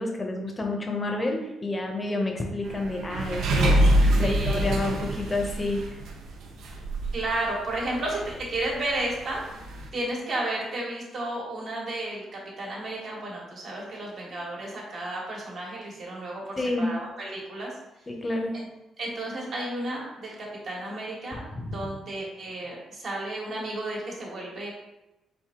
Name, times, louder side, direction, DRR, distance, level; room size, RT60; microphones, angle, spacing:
voice 1, 0.0-6.0 16.6-16.9 18.1-18.6 21.3-21.8, left 2 dB, 20° left, 2 dB, 0.7 m, -29 dB
sound 1, 2.6-7.3 7.7-7.8 8.0-8.3 8.6-8.7 9.6-9.9, right 1 dB, 85° right, 0.6 m, -24 dB
voice 2, 4.2-4.7 7.1-9.4 9.9-17.7 18.5-18.7 19.0-24.8, right 1 dB, 55° right, -3 dB, 1.4 m, -33 dB
4.5 x 2.6 x 3.6 m, 0.96 s
cardioid pair, 115°, 0 cm